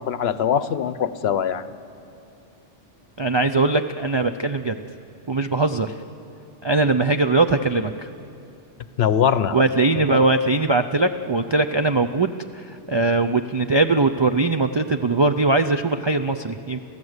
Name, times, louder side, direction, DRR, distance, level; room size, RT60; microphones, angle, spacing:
voice 1, 0.0-1.7 9.0-9.6 10.0-10.1, left 8 dB, 65° left, 14 dB, 0.9 m, -22 dB
voice 2, 3.2-4.8 5.3-5.9 6.6-8.1 9.5-16.8, right 3 dB, 45° right, 7 dB, 0.3 m, -21 dB
29.5 x 15.0 x 8.0 m, 2.7 s
omnidirectional pair, 1.2 m